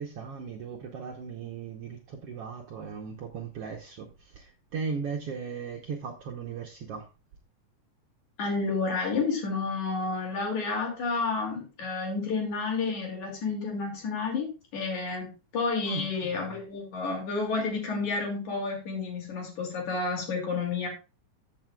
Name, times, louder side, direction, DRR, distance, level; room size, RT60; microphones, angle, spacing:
voice 1, 0.0-7.1 15.9-16.6, right 5 dB, 70° right, 1.5 m, -37 dB
voice 2, 8.4-20.9, left 4 dB, 65° left, 3.8 m, -30 dB
13.5 x 6.5 x 2.3 m
omnidirectional pair, 3.7 m